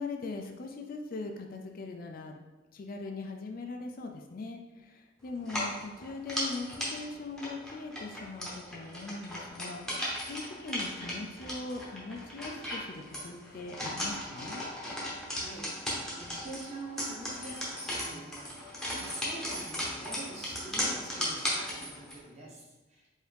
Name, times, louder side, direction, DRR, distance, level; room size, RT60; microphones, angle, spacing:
voice 1, 0.0-2.4 2.7-14.6, left 3 dB, 45° left, 3 dB, 0.3 m, -41 dB
sound 1, 5.4-22.2, equal, 5° left, 0.8 m, -37 dB
voice 2, 15.3-18.5 19.0-23.1, right 2 dB, 35° right, -5 dB, 1.1 m, -45 dB
4.8 x 2.7 x 3.3 m, 1.2 s
head